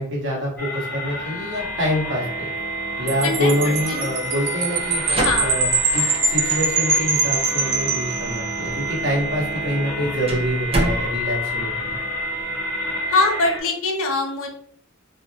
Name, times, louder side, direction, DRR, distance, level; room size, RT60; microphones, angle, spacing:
voice 1, 0.0-2.5 3.0-12.0, equal, 55° right, -6 dB, 1.1 m, -26 dB
sound 1, 0.6-13.6, equal, 10° left, 0.9 m, -29 dB
Wind chime, 3.1-8.8, right 3 dB, 80° right, 0.7 m, -23 dB
voice 2, 3.2-4.1 5.2-5.6 13.1-14.5, left 3 dB, 65° left, 1 dB, 0.6 m, -23 dB
sound 2, 4.9-12.4, right 1 dB, 25° right, 0.4 m, -29 dB
2.6 x 2.1 x 2.7 m, 0.65 s
head